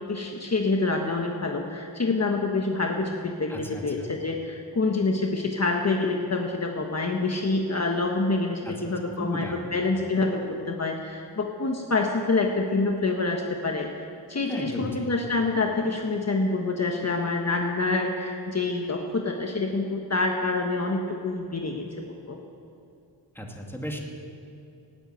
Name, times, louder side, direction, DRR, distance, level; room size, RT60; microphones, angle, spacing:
voice 1, 0.0-22.4, left 3 dB, 35° left, 2 dB, 1.3 m, -27 dB
voice 2, 3.5-4.1 8.7-8.9 9.2-9.7 14.5-15.0 23.3-24.0, equal, 5° left, 1 dB, 2.2 m, -35 dB
17.5 x 8.1 x 9.1 m, 2.6 s
wide cardioid pair, 90°, 44 cm